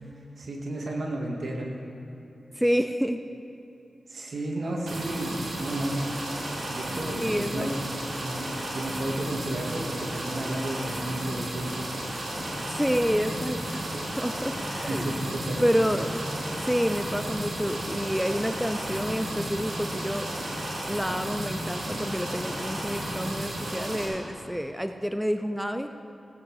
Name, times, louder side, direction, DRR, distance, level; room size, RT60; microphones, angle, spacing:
voice 1, 0.4-1.8 4.1-6.1 6.7-8.5 8.7-11.9 14.9-15.7, right 1 dB, 65° right, 0 dB, 2.0 m, -32 dB
voice 2, 2.6-3.2 7.2-7.7 12.7-15.0 15.6-16.2 16.6-20.3 20.9-25.9, equal, 5° right, 8 dB, 0.5 m, -28 dB
fast foward, 4.9-24.1, right 1 dB, 80° right, 3.1 m, -34 dB
sound 1, 12.3-23.4, left 1 dB, 35° left, 1.2 m, -40 dB
17.5 x 8.5 x 4.8 m, 2.8 s
cardioid pair, 60°, 0 cm